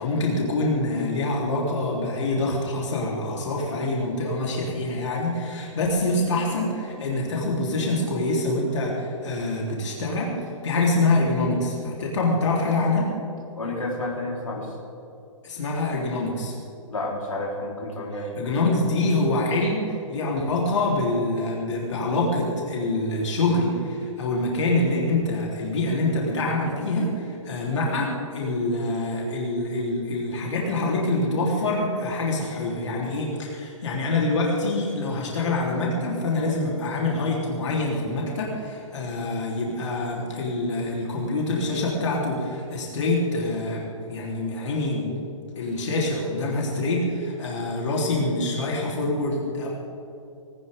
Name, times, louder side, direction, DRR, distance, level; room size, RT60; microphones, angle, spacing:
voice 1, 0.0-10.4 10.6-13.1 15.4-16.5 18.1-45.2 45.6-49.7, left 2 dB, 60° left, -3 dB, 3.9 m, -25 dB
voice 2, 13.6-14.7 16.9-18.3, left 2 dB, 80° left, -3 dB, 4.2 m, -30 dB
19.5 x 18.5 x 3.8 m, 2.8 s
figure-of-eight pair, 125°, 17 cm